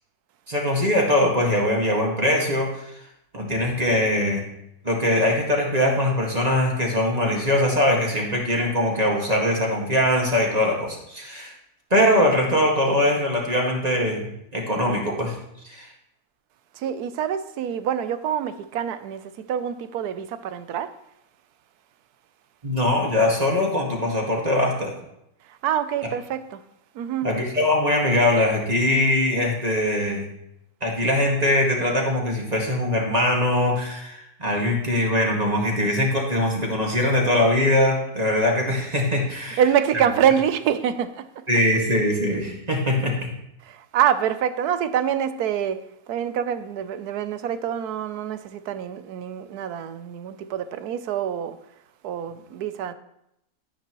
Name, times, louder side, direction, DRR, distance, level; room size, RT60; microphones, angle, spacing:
voice 1, 0.5-2.7 3.3-4.4 4.8-11.5 11.9-15.4 15.6-15.9 22.6-24.9 27.2-30.3 30.8-39.6 41.5-43.3, left 1 dB, 25° right, 1.9 m, -22 dB
voice 2, 16.7-20.9 25.5-26.6 26.9-27.3 39.6-41.4 43.6-45.8 46.1-51.6 52.0-52.9, right 9 dB, 90° right, 1.2 m, -25 dB
12.0 x 9.8 x 3.0 m
omnidirectional pair, 1.6 m